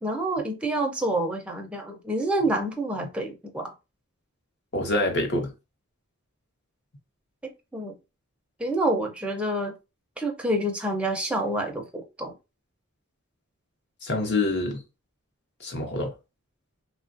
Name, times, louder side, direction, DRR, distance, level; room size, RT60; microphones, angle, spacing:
voice 1, 0.0-3.7 7.4-7.9 8.6-9.7 10.2-12.3, right 1 dB, 5° right, 0.5 m, -28 dB
voice 2, 4.7-5.5 14.0-14.8 15.6-16.1, left 2 dB, 50° left, 0.9 m, -26 dB
3.0 x 2.3 x 2.5 m
head